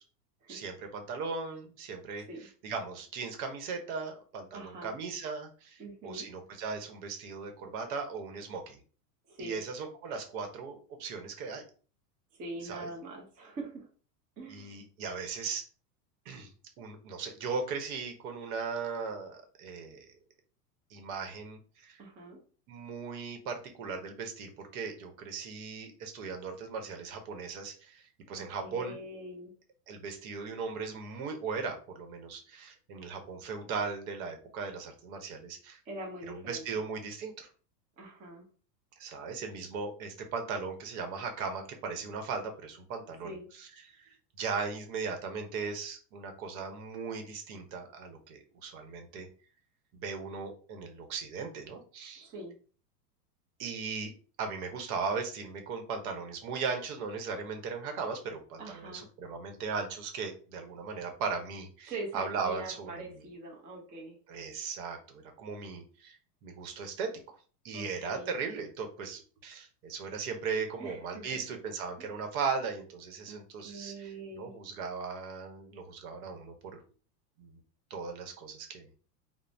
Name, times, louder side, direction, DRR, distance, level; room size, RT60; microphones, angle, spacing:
voice 1, 0.5-2.2 2.6-8.8 9.4-11.6 12.6-12.9 14.5-15.6 16.3-16.5 16.8-20.1 20.9-22.0 22.7-29.0 29.9-35.8 36.3-37.5 39.0-49.3 49.9-52.3 53.6-54.1 54.4-63.0 64.3-67.4 67.6-76.8 77.4-77.6 77.9-78.9, right 5 dB, 60° right, 5 dB, 0.9 m, -38 dB
voice 2, 4.5-5.0 5.8-6.3 9.3-9.6 12.4-13.9 14.4-14.8 22.0-22.4 28.3-29.5 35.9-36.6 38.0-38.5 43.2-43.4 52.2-52.6 58.6-59.1 61.9-64.2 67.7-68.3 70.8-71.4 72.0-72.1 73.3-74.5, right 2 dB, 20° right, -1 dB, 0.4 m, -43 dB
2.4 x 2.0 x 3.2 m, 0.39 s
hypercardioid pair, 125°, 48 cm